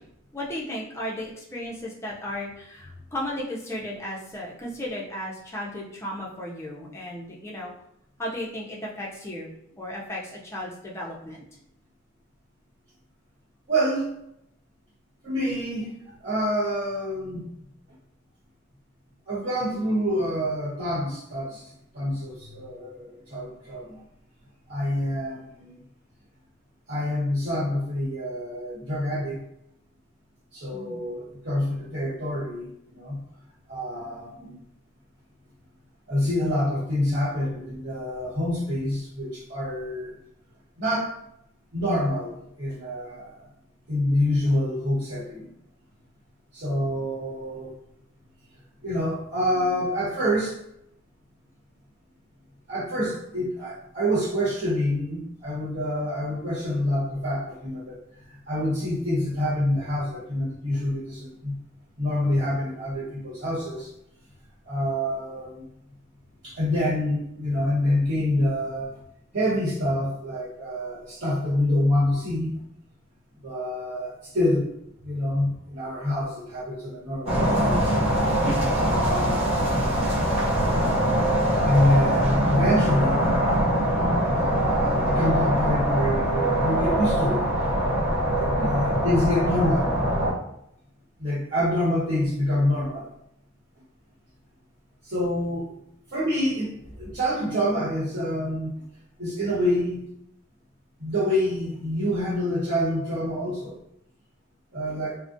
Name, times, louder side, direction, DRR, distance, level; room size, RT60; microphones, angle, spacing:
voice 1, 0.3-7.7 8.2-11.4 30.7-31.0 88.5-88.8, left 1 dB, 15° left, -4 dB, 0.5 m, -35 dB
voice 2, 13.7-14.1 15.2-15.9 16.2-17.5 19.3-21.6 21.9-24.0 24.7-25.8 26.9-29.4 30.5-33.2 33.7-34.6 36.1-40.2 40.8-41.2 41.7-43.4 43.9-45.5 46.5-47.7 48.8-50.6 52.7-58.0 58.5-61.6 62.0-63.9 64.7-65.6 66.4-69.0 69.3-72.5 73.4-74.7 75.0-77.9 78.8-79.8 81.6-83.4 84.4-87.4 88.3-90.0 91.2-93.1 95.0-95.7 96.1-98.7 99.2-100.1 101.0-103.8 104.7-105.2, left 1 dB, 55° right, -9 dB, 1.1 m, -26 dB
sound 1, 77.3-90.3, equal, 30° right, 0.7 m, -23 dB
2.4 x 2.1 x 2.6 m, 0.75 s
head